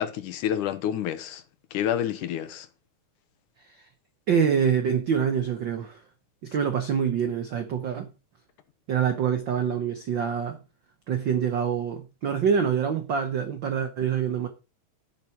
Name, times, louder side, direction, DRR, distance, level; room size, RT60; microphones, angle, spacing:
voice 1, 0.0-1.4 1.7-2.7, left 10 dB, 80° left, 2.6 m, -28 dB
voice 2, 4.3-6.0 6.4-8.1 8.9-10.6 11.1-14.5, right 7 dB, 75° right, 1.0 m, -26 dB
10.0 x 9.1 x 4.6 m
omnidirectional pair, 3.6 m